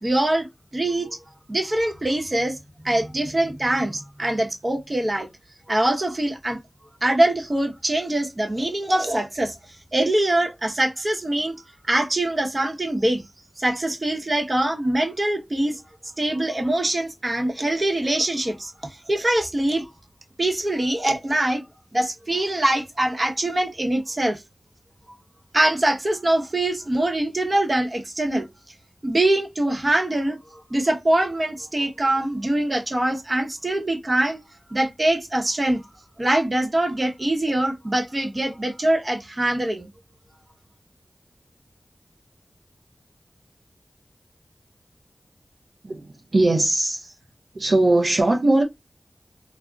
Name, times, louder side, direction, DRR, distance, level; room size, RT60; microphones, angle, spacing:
voice 1, 0.0-0.5 0.7-1.2 1.5-2.6 2.8-5.3 5.7-6.6 7.0-9.6 9.9-11.6 11.9-13.2 13.6-15.8 16.2-19.9 20.4-21.6 21.9-24.4 25.5-28.5 29.0-34.4 34.7-35.8 36.2-39.9, right 1 dB, 45° right, 0.9 m, -23 dB
voice 2, 45.8-47.2 47.5-48.6, right 2 dB, 70° right, 0.5 m, -20 dB
3.7 x 2.1 x 2.3 m
wide cardioid pair, 45°, 0 cm